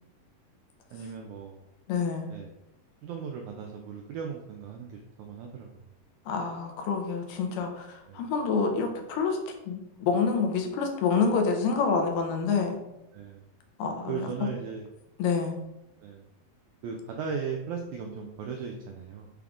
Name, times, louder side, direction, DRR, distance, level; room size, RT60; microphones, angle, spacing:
voice 1, 0.9-1.6 2.3-2.5 3.0-5.9 8.1-8.3 13.1-13.5 14.1-14.8 16.0-16.2 16.8-19.3, right 6 dB, 85° right, 1 dB, 1.7 m, -37 dB
voice 2, 1.9-2.3 6.3-12.8 13.8-14.3 15.2-15.5, left 5 dB, 85° left, 4 dB, 2.3 m, -27 dB
5.9 x 2.4 x 3.5 m, 0.91 s
omnidirectional pair, 3.9 m